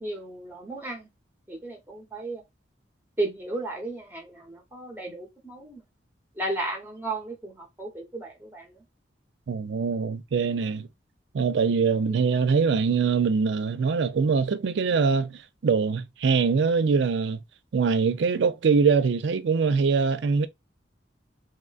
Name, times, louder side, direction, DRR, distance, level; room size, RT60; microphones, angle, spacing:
voice 1, 0.0-1.1 1.5-2.4 3.2-5.8 6.4-8.8 12.1-12.2, right 2 dB, 10° right, 0.9 m, -34 dB
voice 2, 9.5-10.9 11.3-17.4 17.7-20.5, right 5 dB, 70° right, 0.4 m, -23 dB
3.6 x 2.2 x 2.3 m
head